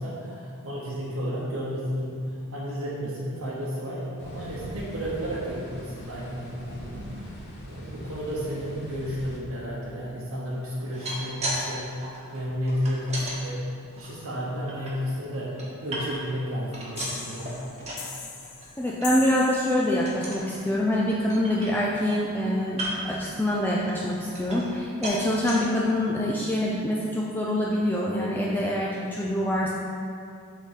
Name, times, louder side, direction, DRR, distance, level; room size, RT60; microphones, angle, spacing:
voice 1, 0.0-17.5, equal, 75° right, -7 dB, 1.0 m, -32 dB
sound 1, 4.2-9.4, left 1 dB, 50° left, 1.1 m, -42 dB
sound 2, 10.8-11.6 11.9-13.4 13.9-14.9 15.4-16.4 16.7-18.1 18.4-18.7 19.0-19.1 19.5-19.7 20.1-20.5 20.9-21.0 21.3-22.1 22.7-23.2 23.7-24.8 25.0-25.6 26.2-26.3 26.6-26.7, right 1 dB, 30° right, 1.2 m, -35 dB
sound 3, 16.9-20.2, left 5 dB, 75° left, 0.8 m, -39 dB
voice 2, 18.8-29.7, left 1 dB, 10° left, -4 dB, 0.4 m, -25 dB
6.1 x 3.7 x 5.6 m, 2.5 s
head